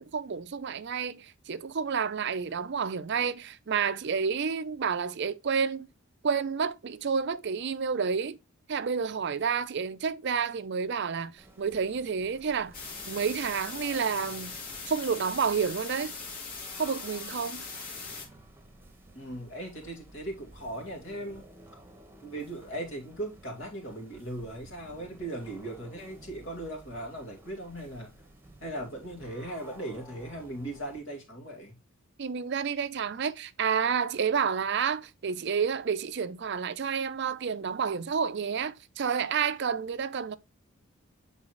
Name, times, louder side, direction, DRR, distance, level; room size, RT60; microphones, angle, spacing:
voice 1, 0.0-5.9 6.2-8.4 8.7-12.7 13.1-14.6 14.9-16.1 16.8-17.7 32.2-40.4, right 6 dB, 50° right, 0.4 m, -30 dB
sound 1, 11.4-31.0, right 1 dB, 10° right, 1.2 m, -54 dB
sound 2, 12.7-18.3, left 4 dB, 40° left, 2.2 m, -40 dB
voice 2, 19.1-21.4 22.2-28.1 28.6-31.7, right 1 dB, 60° left, 2.4 m, -38 dB
8.8 x 4.1 x 3.0 m
head